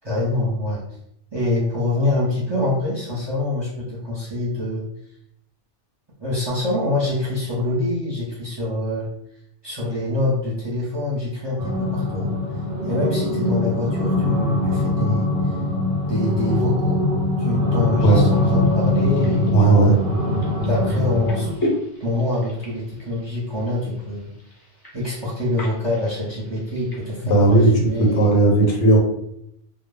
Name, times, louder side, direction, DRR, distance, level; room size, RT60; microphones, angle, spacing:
voice 1, 0.0-0.8 1.3-4.8 6.2-9.1 9.6-12.3 12.8-15.5 16.0-17.0 17.4-20.0 20.7-21.7 22.0-24.3 24.9-28.6, left 2 dB, 25° right, -6 dB, 0.7 m, -25 dB
sound 1, 11.6-21.5, left 2 dB, 60° right, 0.7 m, -22 dB
sound 2, 18.3-28.3, left 1 dB, 30° left, 0.4 m, -36 dB
voice 2, 19.5-20.0 27.2-29.0, right 2 dB, 80° left, 1 dB, 0.9 m, -15 dB
2.2 x 2.0 x 3.3 m, 0.74 s
omnidirectional pair, 1.2 m